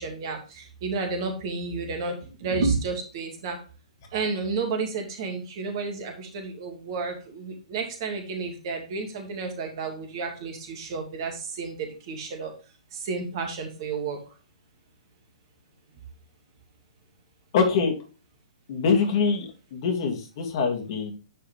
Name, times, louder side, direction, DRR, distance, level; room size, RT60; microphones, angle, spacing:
voice 1, 0.0-3.6 4.1-12.5 12.9-14.2, right 4 dB, 40° right, 4 dB, 2.3 m, -31 dB
voice 2, 17.5-17.9 18.7-21.1, left 5 dB, 45° left, 2 dB, 2.8 m, -24 dB
10.0 x 4.8 x 3.5 m, 0.34 s
figure-of-eight pair, 120°, 4 cm